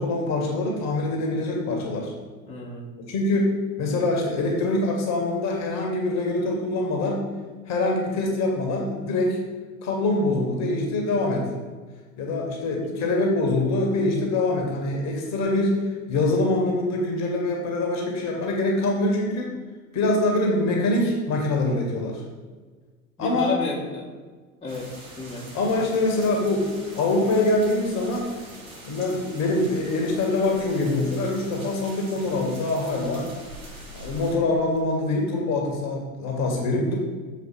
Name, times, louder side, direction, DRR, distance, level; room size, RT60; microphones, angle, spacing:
voice 1, 0.0-2.1 3.1-7.3 7.7-9.4 9.8-11.5 12.2-15.8 16.1-19.5 19.9-22.2 23.2-23.5 25.5-26.7 27.0-28.3 28.8-33.3 33.9-37.0, left 2 dB, 40° left, 0 dB, 1.9 m, -24 dB
voice 2, 2.5-2.9 12.8-13.0 23.2-24.1 24.6-24.9 25.2-25.5, left 3 dB, 15° left, -5 dB, 1.8 m, -31 dB
sound 1, 24.7-34.4, right 1 dB, 70° right, 2.2 m, -43 dB
7.5 x 4.7 x 6.4 m, 1.4 s
figure-of-eight pair, 75°, 42 cm